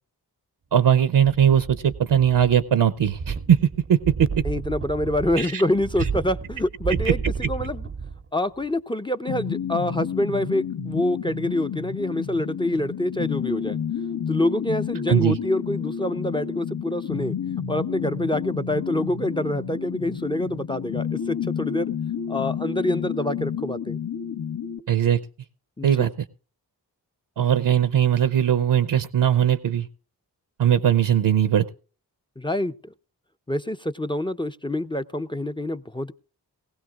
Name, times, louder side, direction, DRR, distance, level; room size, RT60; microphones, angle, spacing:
voice 1, 0.7-3.6 3.9-4.3 5.4-5.6 15.1-15.4 24.9-25.2 25.8-26.1 27.4-29.9 30.6-31.6, right 9 dB, 70° right, 12 dB, 0.7 m, -19 dB
sound 1, 1.3-2.7 3.0-8.3 8.6-8.7, right 5 dB, 30° right, 0.6 m, -32 dB
voice 2, 4.4-7.9 8.3-13.8 14.3-17.4 17.7-21.9 22.3-24.0 25.8-26.1 32.4-32.9 33.5-36.1, left 1 dB, 10° left, 12 dB, 0.5 m, -26 dB
sound 2, 9.3-24.8, left 7 dB, 70° left, 1.2 m, -30 dB
19.0 x 16.5 x 2.4 m, 0.38 s
cardioid pair, 45°, 42 cm